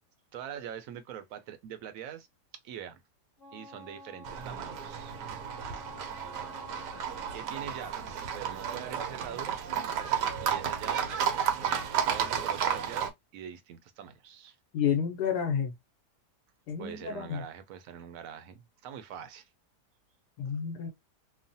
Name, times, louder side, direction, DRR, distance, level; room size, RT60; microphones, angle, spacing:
voice 1, 0.3-2.3 2.6-3.0 3.5-5.2 7.3-9.7 10.4-11.2 11.5-14.6 16.8-19.5, right 9 dB, 70° right, 0.9 m, -44 dB
Wind instrument woodwind instrument, 3.4-7.7, left 1 dB, 35° left, 1.1 m, -49 dB
Livestock farm animals working animals, 4.3-13.1, right 8 dB, 85° right, 1.2 m, -32 dB
voice 2, 14.7-15.7 16.7-17.4 20.4-20.9, left 7 dB, 75° left, 1.2 m, -30 dB
3.1 x 2.1 x 2.6 m
omnidirectional pair, 1.8 m